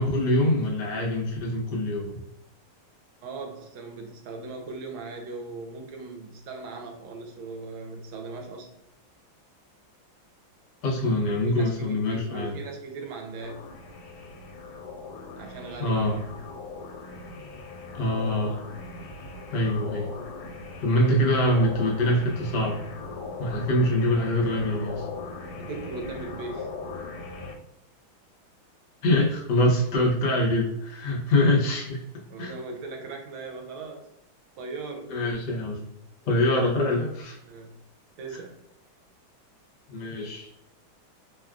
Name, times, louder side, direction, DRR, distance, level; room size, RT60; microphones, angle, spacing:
voice 1, 0.0-2.2 10.8-12.5 15.8-16.2 17.9-18.6 19.5-20.1 20.8-22.8 23.4-25.0 29.0-32.0 32.4-32.5 35.1-35.9 36.3-37.4 39.9-40.5, left 1 dB, 60° left, -2 dB, 1.3 m, -24 dB
voice 2, 3.2-8.7 11.2-13.7 15.4-16.1 25.6-26.7 31.1-31.2 32.3-34.1 34.6-35.1 37.4-37.8 38.2-38.6, right 3 dB, 80° right, 3 dB, 1.3 m, -39 dB
sound 1, 13.4-27.6, left 3 dB, 80° left, 1.4 m, -39 dB
3.4 x 2.3 x 2.3 m, 0.84 s
omnidirectional pair, 2.3 m